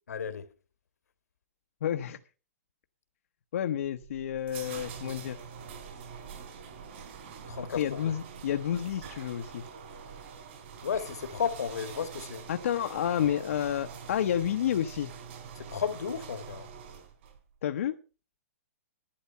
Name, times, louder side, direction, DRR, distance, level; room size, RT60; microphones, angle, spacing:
voice 1, 0.1-0.5 7.5-8.1 10.8-12.4 15.5-16.7, left 7 dB, 85° left, 1.7 m, -33 dB
voice 2, 1.8-2.2 3.5-5.4 7.8-9.6 12.5-15.1 17.6-18.0, left 10 dB, 60° left, 0.9 m, -30 dB
sound 1, 3.8-17.4, right 6 dB, 45° right, 3.6 m, -45 dB
11.5 x 10.5 x 5.6 m
hypercardioid pair, 160°, 8 cm